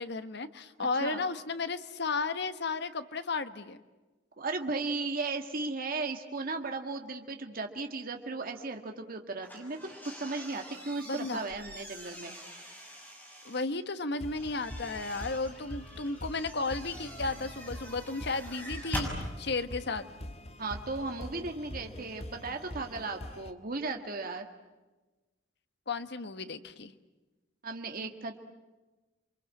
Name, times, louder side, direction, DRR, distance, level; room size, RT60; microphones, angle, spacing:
voice 1, 0.0-3.8 11.1-11.4 13.4-19.1 19.4-20.1 25.9-26.9, left 3 dB, 65° left, 11 dB, 1.3 m, -34 dB
voice 2, 0.8-1.2 4.4-9.8 10.0-12.4 20.6-24.5 27.6-28.4, right 3 dB, 50° right, 4 dB, 1.9 m, -36 dB
sound 1, 9.4-13.6 14.3-19.2, equal, 10° left, 6.4 m, -44 dB
sound 2, 14.2-23.5, left 1 dB, 35° left, 1.6 m, -44 dB
29.0 x 24.0 x 8.4 m, 1.2 s
head